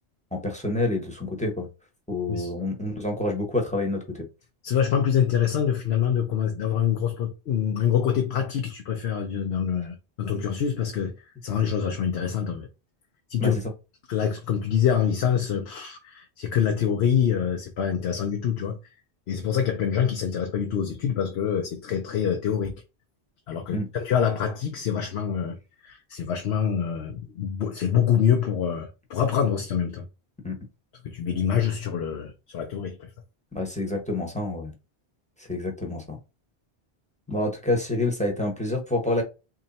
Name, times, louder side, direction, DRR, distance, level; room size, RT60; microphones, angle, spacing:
voice 1, 0.3-1.7 2.1-4.3 13.4-13.5 23.7-23.9 30.4-30.6 33.5-34.7 35.5-36.2 37.3-39.2, left 2 dB, 5° left, 0.9 m, -27 dB
voice 2, 4.6-12.7 13.3-13.6 14.1-18.8 19.3-22.7 23.5-25.6 25.8-30.0 31.0-33.1, left 8 dB, 75° left, 0.9 m, -25 dB
3.0 x 2.8 x 4.0 m
omnidirectional pair, 1.1 m